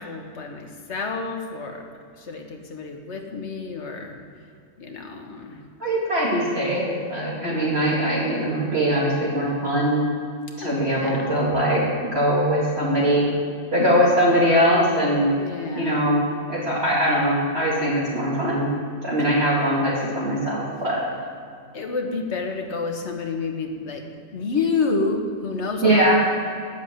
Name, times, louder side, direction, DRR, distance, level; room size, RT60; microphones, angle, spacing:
voice 1, 0.0-1.9 2.2-4.2 4.8-5.6 7.3-7.7 10.6-11.3 15.3-16.0 21.7-24.0 24.3-26.1, left 4 dB, 50° left, 3 dB, 1.5 m, -29 dB
voice 2, 5.8-10.0 10.6-11.8 12.1-13.3 13.7-15.3 15.8-16.2 16.5-18.7 19.0-21.0 25.8-26.1, equal, 45° right, -7 dB, 2.6 m, -21 dB
10.5 x 7.1 x 8.0 m, 2.3 s
omnidirectional pair, 1.5 m